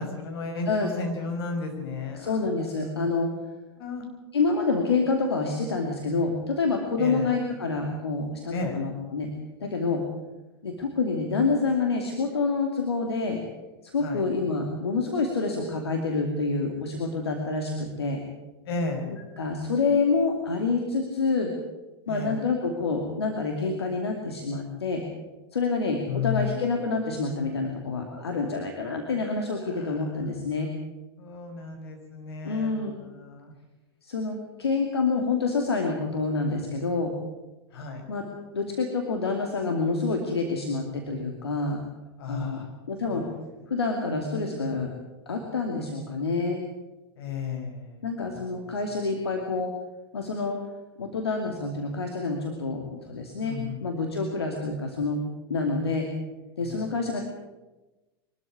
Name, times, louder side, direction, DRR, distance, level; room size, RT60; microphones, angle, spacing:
voice 1, 0.0-2.4 3.8-4.0 7.0-7.3 8.5-8.7 14.0-14.2 18.7-19.1 22.1-22.4 26.1-26.7 29.7-30.1 31.2-33.5 37.7-38.0 42.2-42.7 43.1-43.3 47.2-48.0 48.3-48.6 53.4-53.9 56.6-56.9, left 4 dB, 70° left, 4 dB, 5.5 m, -33 dB
voice 2, 2.1-3.3 4.3-9.3 9.6-10.0 10.6-13.4 13.8-18.2 19.4-21.5 22.1-25.0 25.5-30.7 32.4-33.0 34.0-37.1 38.1-38.2 38.5-41.8 42.3-42.6 42.9-43.3 43.7-44.9 45.3-46.6 48.0-49.7 50.1-50.6 51.0-55.2 55.5-56.1 56.6-57.2, left 4 dB, 90° left, 2 dB, 2.6 m, -27 dB
23.5 x 13.0 x 8.5 m, 1.1 s
hypercardioid pair, 95°, 13 cm